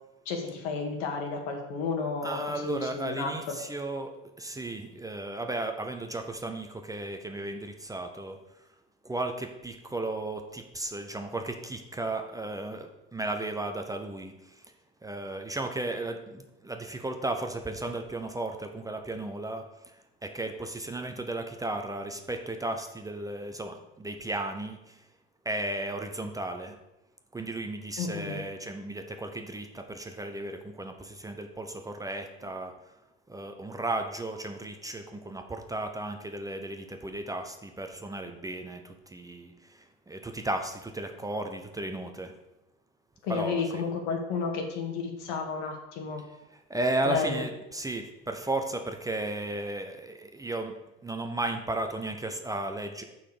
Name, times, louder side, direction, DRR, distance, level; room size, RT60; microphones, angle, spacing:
voice 1, 0.3-3.5 28.0-28.4 43.2-46.2 47.0-47.4, left 4 dB, 70° left, 3 dB, 1.8 m, -32 dB
voice 2, 2.2-4.1 4.4-8.4 9.0-14.6 15.0-19.7 20.2-25.0 25.4-26.7 27.3-32.7 33.3-42.3 43.3-43.8 46.7-50.7 51.0-53.0, right 2 dB, 10° right, 5 dB, 0.7 m, -34 dB
6.6 x 5.8 x 4.9 m, 0.93 s
supercardioid pair, 95°, 31 cm